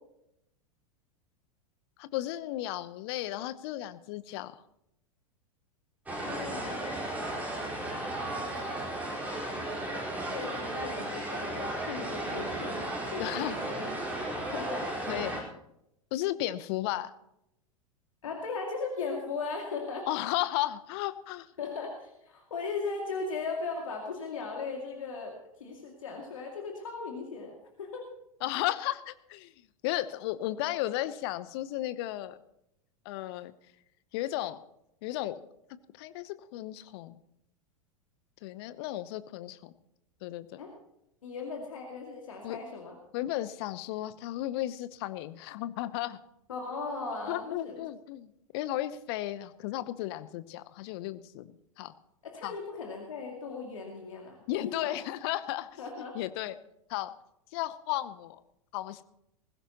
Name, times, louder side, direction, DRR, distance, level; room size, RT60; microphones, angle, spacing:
voice 1, 2.0-4.6 13.2-13.6 15.1-15.4 16.1-17.1 20.1-21.5 28.4-29.5 29.8-32.4 33.0-33.5 34.1-34.6 35.0-35.4 35.9-37.2 38.4-39.7 40.2-40.6 42.4-42.6 43.1-46.2 47.3-51.9 52.4-52.6 54.5-55.8 56.1-56.5 56.9-57.1 57.5-58.4 58.7-59.0, left 15 dB, 45° left, 14 dB, 0.9 m, -34 dB
sound 1, 6.1-15.4, right 1 dB, 10° right, 4.5 m, -35 dB
voice 2, 6.2-6.9 10.1-13.8 14.3-15.2 18.2-20.1 21.6-28.0 40.6-40.7 41.2-43.0 46.5-47.8 52.2-54.4 54.6-55.0 55.8-56.2, left 4 dB, 65° left, 0 dB, 2.4 m, -38 dB
20.5 x 15.5 x 3.0 m, 0.80 s
figure-of-eight pair, 90°, 18 cm